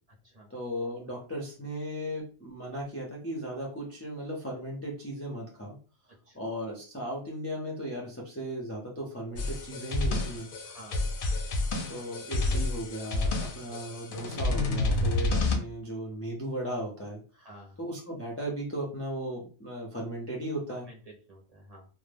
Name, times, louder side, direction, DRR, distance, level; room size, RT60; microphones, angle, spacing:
voice 1, 0.5-5.8 6.3-10.5 11.9-17.2 17.8-20.9, equal, 25° left, -4 dB, 0.3 m, -36 dB
sound 1, 9.3-15.6, left 2 dB, 60° left, 0.6 m, -29 dB
voice 2, 10.6-11.1 12.0-12.1 17.3-17.8 20.7-21.9, right 1 dB, 40° right, -3 dB, 0.6 m, -51 dB
2.1 x 2.0 x 3.2 m, 0.38 s
omnidirectional pair, 1.2 m